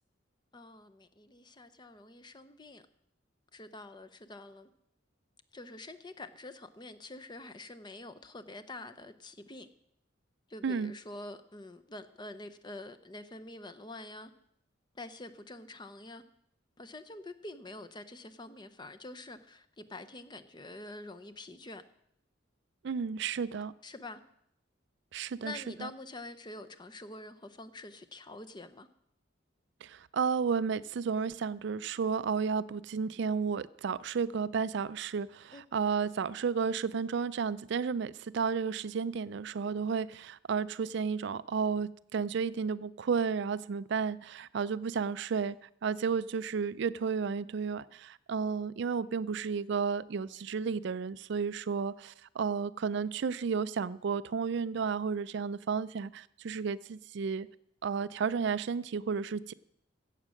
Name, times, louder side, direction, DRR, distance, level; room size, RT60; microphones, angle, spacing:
voice 1, 0.5-2.8 3.5-4.7 5.5-9.7 10.5-14.3 14.9-16.2 16.8-21.8 23.8-24.2 25.4-28.9 35.5-35.6, left 2 dB, 25° left, 0.7 m, -46 dB
voice 2, 22.8-23.7 25.1-25.5 25.8-25.9 29.8-45.6 45.8-57.5 57.8-59.5, right 6 dB, 65° right, 0.4 m, -32 dB
16.5 x 7.4 x 6.4 m
head